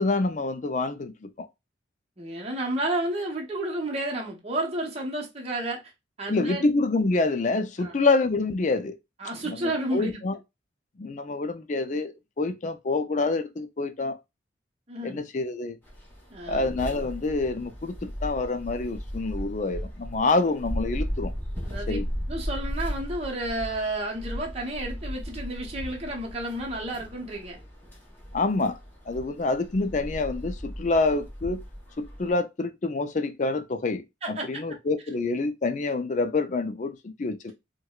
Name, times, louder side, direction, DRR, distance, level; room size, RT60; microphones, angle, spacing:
voice 1, 0.0-1.5 6.3-9.0 9.5-10.4 11.0-14.2 15.0-15.8 16.5-21.3 21.9-22.1 28.3-28.8 29.1-31.6 32.0-37.5, left 3 dB, 40° left, 0.4 m, -27 dB
voice 2, 2.2-5.8 6.2-6.7 7.8-7.9 9.2-10.2 14.9-15.2 16.3-16.7 21.6-22.0 22.3-27.6 34.2-34.6, right 1 dB, 30° right, 0.8 m, -31 dB
sound 1, 15.8-32.3, equal, 10° left, 1.0 m, -36 dB
4.6 x 2.2 x 2.3 m
head